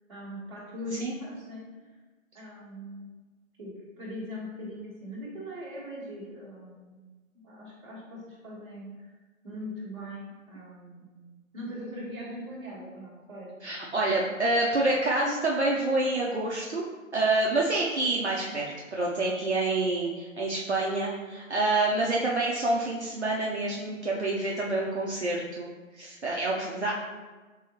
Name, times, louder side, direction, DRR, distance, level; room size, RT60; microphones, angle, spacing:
voice 1, 0.1-2.0 2.3-3.1 3.6-7.0 7.4-9.2 9.4-11.3 11.5-13.7, equal, 20° right, -13 dB, 1.3 m, -40 dB
voice 2, 13.6-16.8 17.1-26.9, right 2 dB, 55° right, -3 dB, 0.6 m, -27 dB
4.8 x 3.7 x 2.8 m, 1.3 s
figure-of-eight pair, 180°, 41 cm